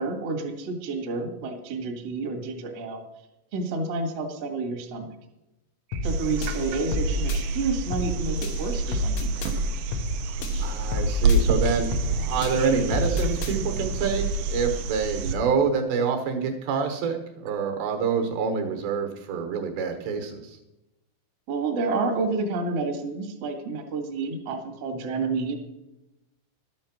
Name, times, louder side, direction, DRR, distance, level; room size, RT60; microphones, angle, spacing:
voice 1, 0.0-3.0 3.5-5.1 5.9-9.5 21.5-25.6, right 3 dB, 55° right, 3 dB, 1.8 m, -29 dB
sound 1, 5.9-6.2 6.4-7.4 7.9-8.2 8.4-9.5 9.9-10.2 10.4-11.4 11.9-12.2 12.4-13.5, left 3 dB, 90° left, 3.9 m, -30 dB
sound 2, 6.0-15.4 17.5-17.6, right 3 dB, 90° right, 2.1 m, -28 dB
voice 2, 10.6-20.6, right 5 dB, 70° right, 5 dB, 3.0 m, -27 dB
12.5 x 8.6 x 6.0 m, 0.95 s
omnidirectional pair, 5.6 m